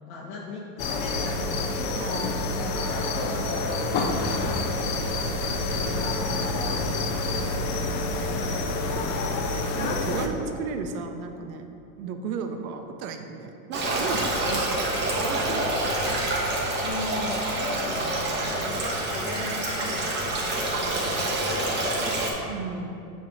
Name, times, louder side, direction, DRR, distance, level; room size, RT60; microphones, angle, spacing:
voice 1, 0.1-2.7 3.1-5.3 7.7-8.1 8.4-9.3 12.5-12.6 16.8-23.0, left 2 dB, 75° left, -6 dB, 1.2 m, -39 dB
sound 1, 0.8-10.3, left 2 dB, 25° left, 0.3 m, -27 dB
voice 2, 2.0-2.4 6.3-6.9 9.8-11.7 12.0-14.9 15.2-15.9 22.5-23.1, right 5 dB, 70° right, 6 dB, 0.8 m, -34 dB
Stream, 13.7-22.3, right 1 dB, 25° right, 1.1 m, -27 dB
6.4 x 3.6 x 6.1 m, 2.7 s
supercardioid pair, 130°, 44 cm